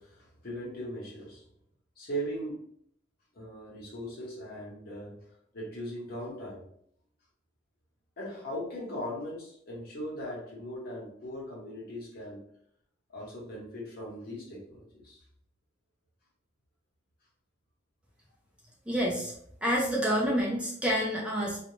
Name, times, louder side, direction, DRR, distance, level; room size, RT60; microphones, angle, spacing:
voice 1, 0.0-1.4 2.0-2.6 3.3-5.2 5.5-6.6 8.2-12.4 13.1-15.2, equal, 55° left, -4 dB, 1.1 m, -39 dB
voice 2, 18.9-19.3 19.6-21.6, equal, 5° right, -4 dB, 0.5 m, -28 dB
2.4 x 2.2 x 3.0 m, 0.66 s
head